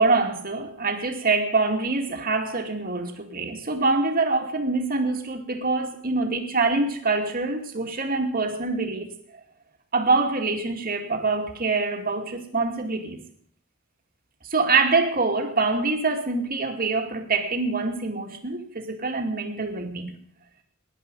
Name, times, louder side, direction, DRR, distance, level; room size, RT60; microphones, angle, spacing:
voice 1, 0.0-9.1 9.9-13.2 14.4-20.2, right 3 dB, 45° right, 2.4 m, -25 dB
18.5 x 11.0 x 5.4 m
head